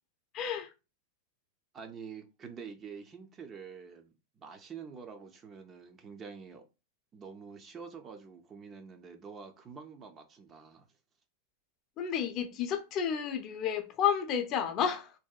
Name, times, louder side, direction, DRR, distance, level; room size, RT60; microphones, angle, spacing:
voice 1, 0.3-0.7 12.0-15.1, left 8 dB, 40° left, 0.4 m, -31 dB
voice 2, 1.7-6.6 7.1-10.8, right 6 dB, 25° right, 0.4 m, -47 dB
2.6 x 2.1 x 2.3 m
supercardioid pair, 130°, 0 cm